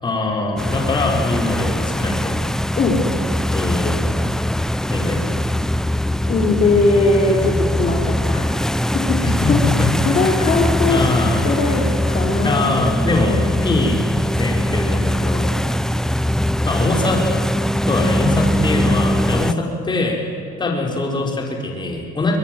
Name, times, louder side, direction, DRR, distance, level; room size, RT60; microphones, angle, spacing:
voice 1, 0.0-2.4 3.5-4.2 4.9-5.2 9.2-10.2 10.8-11.4 12.4-14.0 14.3-15.5 16.6-17.2 17.9-20.2 20.6-22.4, left 2 dB, 25° left, 1 dB, 4.9 m, -22 dB
sound 1, 0.6-19.5, equal, 5° left, 0.7 m, -21 dB
voice 2, 6.2-8.5 8.9-9.6 10.0-11.0 11.4-13.5 20.6-20.8, left 3 dB, 45° left, -2 dB, 4.1 m, -20 dB
23.0 x 21.5 x 9.3 m, 2.3 s
cardioid pair, 110°, 17 cm